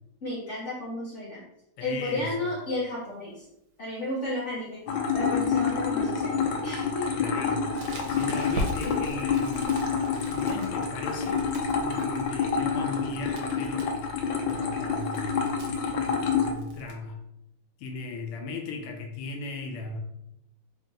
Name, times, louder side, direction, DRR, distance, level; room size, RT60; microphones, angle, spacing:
voice 1, 0.2-1.4 1.8-3.4 3.8-4.8 5.1-6.3 6.6-7.1 8.8-9.2, left 1 dB, 50° left, -6 dB, 0.9 m, -32 dB
voice 2, 1.8-2.5 7.1-7.7 8.1-13.9 14.4-15.5 16.1-17.2 17.8-20.0, left 3 dB, 90° left, 3 dB, 1.6 m, -37 dB
sound 1, 4.9-16.5, left 6 dB, 70° left, 1.2 m, -28 dB
Crackle, 7.7-16.9, right 1 dB, 70° right, 1.5 m, -40 dB
3.8 x 2.7 x 3.7 m, 0.82 s
omnidirectional pair, 2.4 m